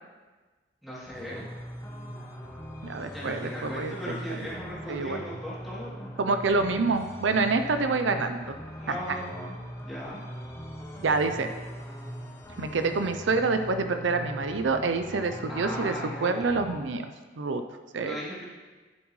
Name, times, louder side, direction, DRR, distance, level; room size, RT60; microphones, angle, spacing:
voice 1, 0.8-1.5 3.1-6.1 8.7-9.6 9.8-10.2 15.5-16.3 18.0-18.5, equal, ahead, -10 dB, 2.8 m, -37 dB
sound 1, 1.1-16.8, equal, 15° left, 1.1 m, -41 dB
voice 2, 2.8-3.9 4.9-5.2 6.2-8.6 8.9-9.0 11.0-11.5 12.6-17.0 17.4-17.6 17.9-18.1, right 3 dB, 90° right, 8 dB, 0.5 m, -27 dB
12.0 x 7.1 x 3.2 m, 1.3 s
head